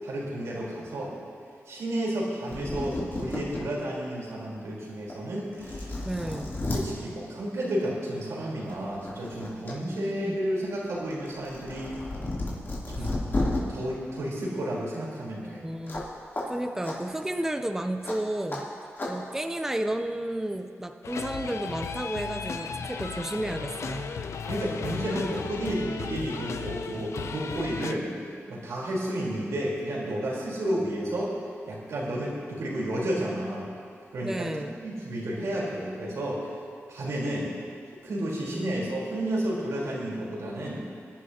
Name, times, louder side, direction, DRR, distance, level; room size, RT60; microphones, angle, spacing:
voice 1, 0.0-1.1 1.7-6.4 6.7-11.9 12.9-13.2 13.7-15.6 24.5-28.1 28.5-31.3 31.6-33.7 34.1-34.5 34.8-36.5 36.9-37.5 38.0-40.8, right 1 dB, 90° right, -5 dB, 3.9 m, -31 dB
sound 1, 2.2-2.3 2.5-3.6 4.2-4.3 5.1-5.2 5.5-6.8 8.1-8.3 8.7-9.7 10.1-13.6 15.9-16.1 16.3-16.4 16.8-17.0 18.0-18.2 18.5-18.6 19.0-19.1, left 2 dB, 45° left, 3.1 m, -32 dB
voice 2, 6.0-6.5 9.8-10.4 13.0-13.1 15.5-16.0 16.5-18.7 19.1-24.2 34.2-34.8 38.5-38.8, right 1 dB, 10° right, 6 dB, 0.5 m, -32 dB
sound 2, 21.0-27.9, left 5 dB, 70° left, 0.6 m, -35 dB
23.5 x 11.0 x 2.9 m, 2.3 s
wide cardioid pair, 110°, 5 cm